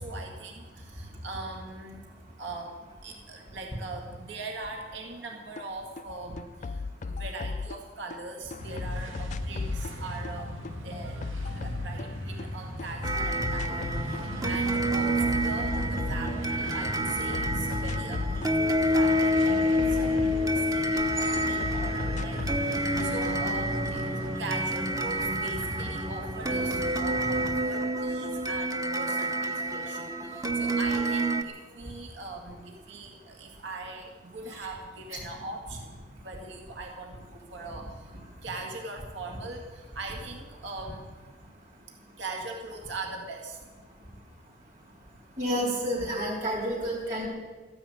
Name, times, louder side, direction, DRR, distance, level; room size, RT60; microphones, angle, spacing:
voice 1, 0.0-2.1 2.4-11.2 11.5-38.1 38.4-41.1 42.2-43.6, right 3 dB, 65° right, 1 dB, 2.0 m, -41 dB
sound 1, 5.6-5.7 6.0-8.2 8.5-12.5 12.8-14.3 14.5-16.8 17.1-21.1 21.4-22.7, left 4 dB, 40° left, 0.3 m, -36 dB
sound 2, 8.6-27.5, equal, 90° right, 2.3 m, -37 dB
sound 3, 13.0-31.4, equal, 20° right, 0.9 m, -28 dB
voice 2, 45.4-47.3, equal, 40° right, -4 dB, 3.6 m, -30 dB
14.0 x 10.0 x 8.9 m, 1.4 s
head